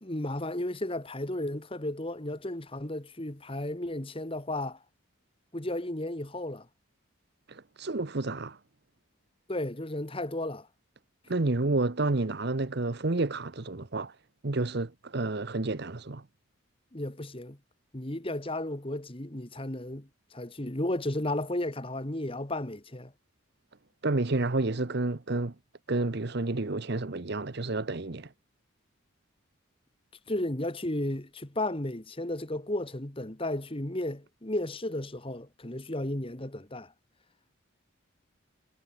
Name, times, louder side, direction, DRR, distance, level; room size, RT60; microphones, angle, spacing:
voice 1, 0.0-4.8 5.5-6.6 9.5-10.7 16.9-17.6 17.9-23.1 30.3-36.9, left 1 dB, 25° left, 1.7 m, -34 dB
voice 2, 7.5-8.6 11.3-14.2 14.4-16.3 24.0-25.5 25.9-28.3, right 2 dB, 50° right, 1.0 m, -30 dB
head